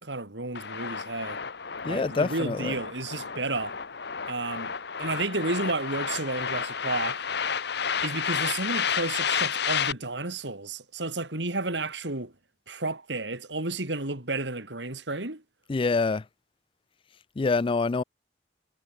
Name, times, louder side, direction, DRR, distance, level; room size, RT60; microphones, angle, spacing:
voice 1, 0.0-1.4 1.8-3.7 4.3-4.7 5.0-7.2 8.0-12.3 12.7-15.4, right 2 dB, 75° right, 3.5 m, -32 dB
sound 1, 0.5-9.9, left 7 dB, 65° left, 1.3 m, -31 dB
voice 2, 1.8-2.8 15.7-16.2 17.4-18.0, left 4 dB, 30° left, 0.4 m, -26 dB
head